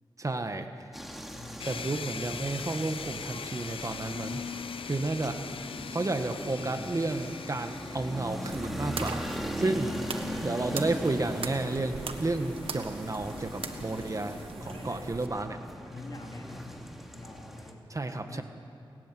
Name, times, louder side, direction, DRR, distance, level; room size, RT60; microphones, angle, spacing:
voice 1, 0.2-0.7 1.6-4.4 4.8-5.4 5.9-9.3 9.6-9.9 10.4-14.4 14.7-15.6 17.9-18.4, right 2 dB, 35° right, 7 dB, 1.5 m, -31 dB
sound 1, 0.9-17.7, equal, ahead, 2.7 m, -40 dB
voice 2, 1.3-2.2 14.6-15.2 15.9-16.9 17.1-18.4, left 2 dB, 45° left, 1 dB, 3.7 m, -46 dB
sound 2, 1.6-14.4, left 6 dB, 75° left, 0.7 m, -42 dB
sound 3, 8.4-15.3, right 5 dB, 90° right, 1.5 m, -41 dB
29.0 x 14.5 x 9.4 m, 2.5 s
cardioid pair, 70°, 9 cm